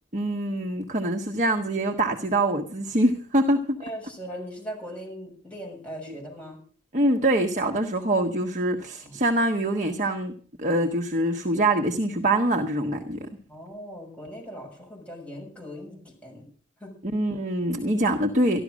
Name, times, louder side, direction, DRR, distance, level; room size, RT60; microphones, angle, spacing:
voice 1, 0.1-3.8 6.9-13.3 17.0-18.6, right 1 dB, 40° right, 3 dB, 1.3 m, -24 dB
voice 2, 3.8-6.6 9.0-9.1 13.5-16.5 16.8-16.9, equal, 5° left, -1 dB, 6.9 m, -39 dB
14.0 x 12.0 x 6.3 m, 0.43 s
head